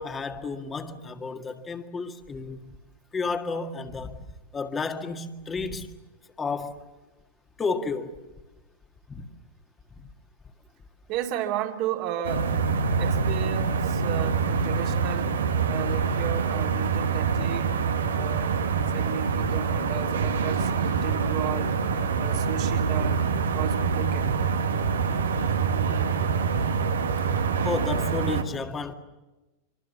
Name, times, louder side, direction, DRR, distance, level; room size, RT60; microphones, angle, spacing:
voice 1, 0.0-2.8 3.1-4.2 4.5-5.9 6.4-6.8 7.6-8.2 9.1-9.3 10.0-10.1 25.2-25.3 27.6-28.9, left 4 dB, 20° left, 1.9 m, -32 dB
voice 2, 11.1-12.5 13.0-15.4 15.7-17.8 18.1-18.6 18.9-21.7 22.2-23.2 23.5-24.5, right 9 dB, 45° right, 2.7 m, -33 dB
sound 1, 12.2-28.4, right 5 dB, 70° right, 1.7 m, -25 dB
26.0 x 25.0 x 7.2 m
figure-of-eight pair, 90°, 0 cm